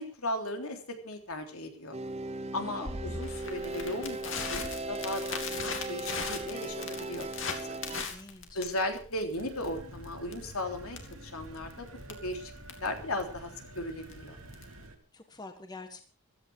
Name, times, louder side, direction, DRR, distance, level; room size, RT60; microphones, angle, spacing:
voice 1, 0.0-2.0 2.5-7.8 8.5-12.5 12.8-14.4, left 1 dB, 75° left, 4 dB, 3.5 m, -37 dB
sound 1, 1.9-8.0, right 2 dB, 30° right, 0.8 m, -38 dB
voice 2, 2.7-3.0 7.9-8.6 15.1-16.0, left 2 dB, 20° left, 6 dB, 1.5 m, -47 dB
Crackle, 2.9-14.8, left 5 dB, 60° left, 2.9 m, -40 dB
sound 2, 9.3-15.0, right 1 dB, 75° right, 2.8 m, -48 dB
16.0 x 14.0 x 4.7 m, 0.38 s
head